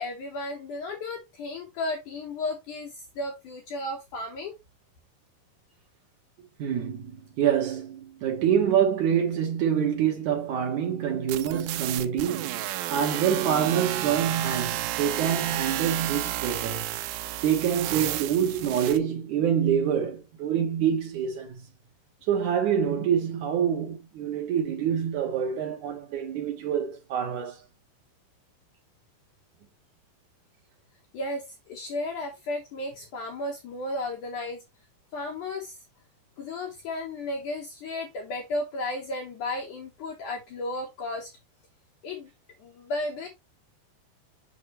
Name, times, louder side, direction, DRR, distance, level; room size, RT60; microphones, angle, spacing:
voice 1, 0.0-4.6 31.1-34.6 35.1-35.8 36.4-41.3 42.0-42.3 42.6-43.3, left 2 dB, 65° left, 2.1 m, -34 dB
voice 2, 6.6-16.9 17.4-21.6 22.3-27.6, right 8 dB, 70° right, 1.9 m, -26 dB
sound 1, 11.3-19.0, right 15 dB, 90° right, 2.0 m, -32 dB
6.7 x 5.5 x 3.0 m
omnidirectional pair, 4.7 m